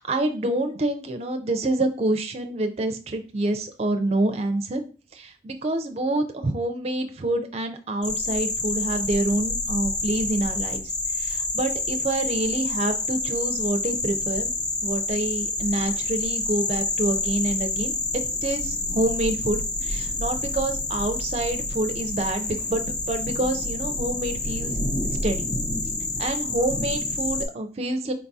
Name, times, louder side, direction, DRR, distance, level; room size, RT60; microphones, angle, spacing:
voice 1, 0.0-4.8 5.1-10.8 11.2-14.5 14.8-24.7 25.2-25.5 26.2-28.1, right 2 dB, 35° right, 6 dB, 0.5 m, -27 dB
sound 1, 8.0-27.4, left 2 dB, 25° left, 0.7 m, -28 dB
4.6 x 3.5 x 2.7 m, 0.37 s
head